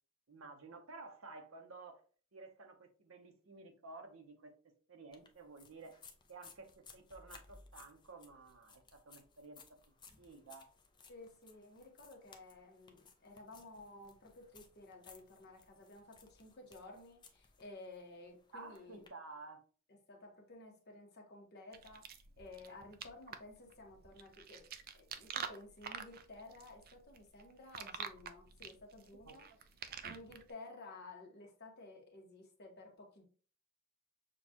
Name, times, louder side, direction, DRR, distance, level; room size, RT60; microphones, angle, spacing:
voice 1, 0.3-2.0 2.3-6.0 6.3-9.6 10.2-10.7 18.5-19.6 29.2-29.4 29.8-30.0, right 3 dB, 80° right, 0.8 m, -53 dB
sound 1, 5.1-19.1, left 5 dB, 20° left, 0.5 m, -62 dB
voice 2, 11.1-19.1 20.1-24.7 24.9-29.4 30.0-33.2, left 2 dB, 50° left, 1.2 m, -54 dB
sound 2, 21.7-30.5, right 7 dB, 45° right, 0.4 m, -47 dB
6.5 x 2.3 x 2.9 m
head